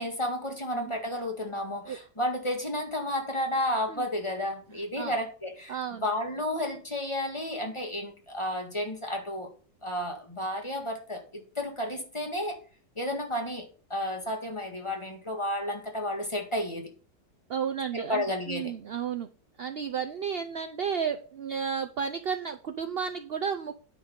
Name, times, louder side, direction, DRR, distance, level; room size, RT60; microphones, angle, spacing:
voice 1, 0.0-9.5 9.8-12.6 13.0-16.9 17.9-18.7, left 1 dB, 15° left, 3 dB, 1.7 m, -32 dB
voice 2, 5.7-6.1 17.5-19.3 19.6-23.7, right 7 dB, 65° right, 8 dB, 0.6 m, -32 dB
9.5 x 6.4 x 5.3 m, 0.39 s
omnidirectional pair, 1.9 m